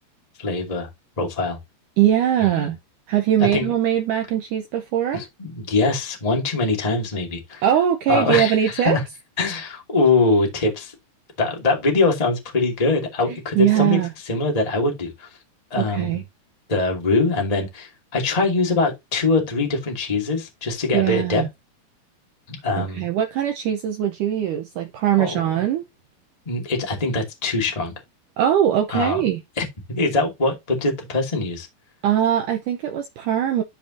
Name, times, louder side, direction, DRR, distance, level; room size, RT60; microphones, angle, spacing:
voice 1, 0.4-0.9 1.2-1.6 2.4-2.7 3.5-3.7 5.1-7.6 8.1-9.0 9.4-10.9 11.4-14.0 14.2-15.3 15.7-16.2 16.7-21.4 22.5-23.1 25.2-25.5 26.4-27.9 28.9-29.2 29.6-31.7, left 3 dB, 15° left, 1.7 m, -23 dB
voice 2, 2.0-2.8 3.1-5.2 7.6-9.0 13.3-14.1 15.8-16.2 20.9-21.5 22.8-25.8 28.4-29.4 32.0-33.6, right 10 dB, 80° right, 1.9 m, -21 dB
13.0 x 5.2 x 2.7 m
omnidirectional pair, 4.7 m